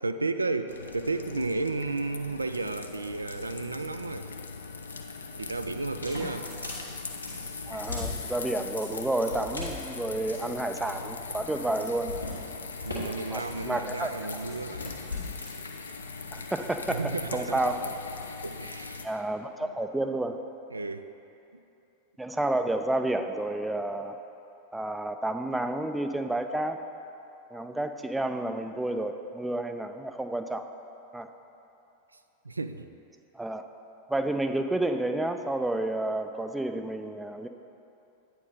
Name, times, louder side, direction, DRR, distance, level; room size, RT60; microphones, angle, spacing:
voice 1, 0.0-4.3 5.4-6.5 12.8-15.0 16.9-17.7 18.4-19.0 19.6-19.7 20.7-21.0 32.4-32.9, right 3 dB, 80° right, 9 dB, 0.3 m, -33 dB
sound 1, 0.7-19.1, left 4 dB, 70° left, 0.5 m, -40 dB
sound 2, 5.9-15.5, left 3 dB, 85° left, 1.6 m, -39 dB
voice 2, 7.7-12.2 13.3-14.1 16.3-17.8 19.0-20.4 22.2-24.2 24.7-26.8 27.5-30.6 31.1-31.3 33.3-33.6 34.1-37.5, right 1 dB, 5° right, 7 dB, 0.4 m, -30 dB
9.1 x 4.5 x 5.0 m, 2.9 s
figure-of-eight pair, 90°, 0 cm